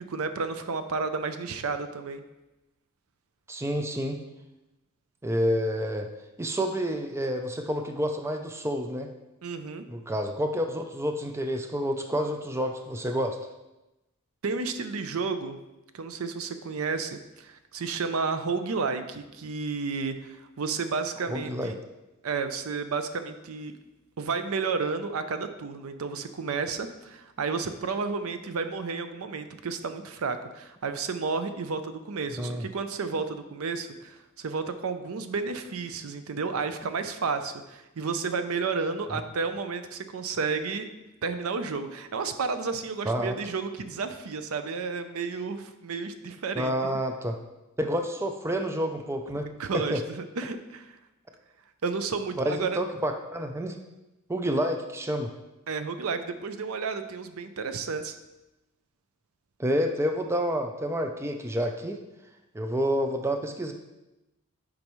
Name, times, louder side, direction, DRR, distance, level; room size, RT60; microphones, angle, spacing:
voice 1, 0.0-2.2 9.4-9.8 14.4-15.6 15.9-21.7 22.2-23.7 24.2-40.9 41.2-46.7 49.6-51.0 51.8-52.8 55.7-58.2, right 4 dB, 75° right, 9 dB, 0.5 m, -32 dB
voice 2, 3.5-4.2 5.2-6.1 6.4-9.1 9.9-13.4 21.3-21.7 32.4-32.7 39.1-39.2 43.1-43.3 46.5-47.4 47.8-49.5 49.7-50.0 52.4-53.8 54.3-55.3 59.6-62.0 62.5-63.7, equal, 10° right, 4 dB, 0.4 m, -29 dB
8.7 x 5.2 x 3.1 m, 0.99 s
head